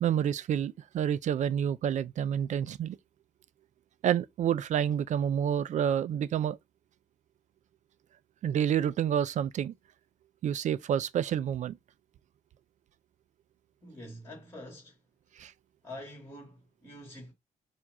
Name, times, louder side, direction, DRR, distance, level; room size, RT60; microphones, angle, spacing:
voice 1, 0.0-3.0 4.0-6.6 8.4-9.7 10.4-11.8 15.4-15.5, right 9 dB, 50° right, 0.4 m, -28 dB
voice 2, 13.8-15.0 15.8-17.3, left 1 dB, 15° left, 2.1 m, -46 dB
7.3 x 2.5 x 5.3 m
cardioid pair, 165°, 16 cm